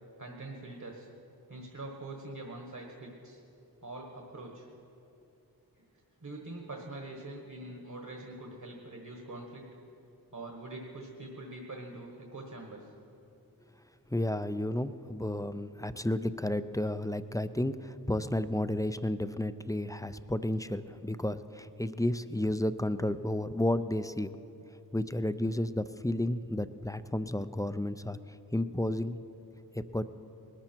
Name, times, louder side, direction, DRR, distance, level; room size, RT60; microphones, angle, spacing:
voice 1, 0.2-1.1 1.5-3.4 3.8-4.7 5.8-5.9 6.2-9.7 10.3-12.8, right 2 dB, 50° right, 1 dB, 1.5 m, -44 dB
voice 2, 14.1-24.3 24.9-28.2 28.5-29.2 29.7-30.0, left 1 dB, 10° left, 13 dB, 0.4 m, -32 dB
20.5 x 13.0 x 4.5 m, 2.9 s
wide cardioid pair, 60°, 38 cm